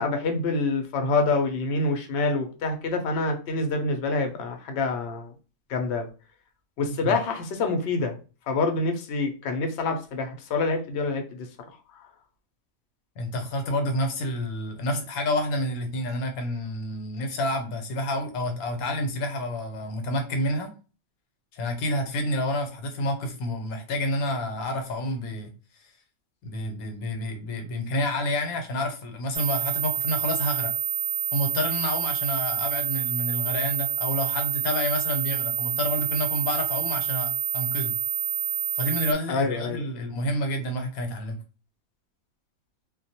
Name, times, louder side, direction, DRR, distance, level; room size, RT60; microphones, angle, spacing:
voice 1, 0.0-5.3 5.7-6.1 6.8-8.2 8.5-11.5 39.3-39.8, left 3 dB, 65° left, 5 dB, 0.7 m, -26 dB
voice 2, 13.2-20.7 21.5-25.5 26.4-30.7 31.3-37.9 38.7-41.4, left 1 dB, 90° left, 6 dB, 1.1 m, -29 dB
sound 1, 29.3-39.1, right 11 dB, 90° right, 1.0 m, -28 dB
2.3 x 2.1 x 2.7 m, 0.34 s
omnidirectional pair, 1.5 m